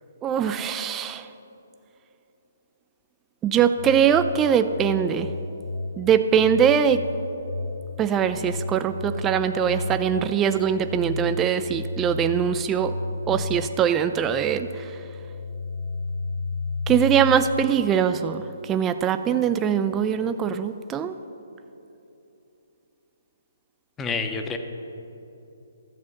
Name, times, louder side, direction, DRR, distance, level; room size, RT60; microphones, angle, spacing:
voice 1, 0.2-1.3 3.4-5.3 6.0-7.0 8.0-12.9 13.3-14.9 16.9-21.2, right 8 dB, 15° right, 10 dB, 0.3 m, -22 dB
sound 1, 3.8-17.4, left 2 dB, 65° left, 2.1 m, -33 dB
voice 2, 24.0-24.6, left 4 dB, 15° left, 6 dB, 0.8 m, -28 dB
12.5 x 7.4 x 5.5 m, 2.9 s
figure-of-eight pair, 135°, 0 cm